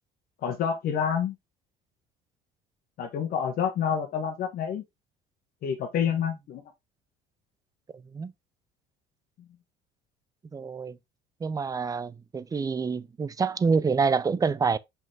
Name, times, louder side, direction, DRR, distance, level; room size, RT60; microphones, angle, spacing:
voice 1, 0.4-1.3 3.0-4.8 5.6-6.6, left 7 dB, 55° left, 1.5 m, -28 dB
voice 2, 10.5-11.0 11.4-14.8, right 5 dB, 20° right, 0.5 m, -27 dB
5.6 x 5.4 x 3.5 m
cardioid pair, 110°, 18 cm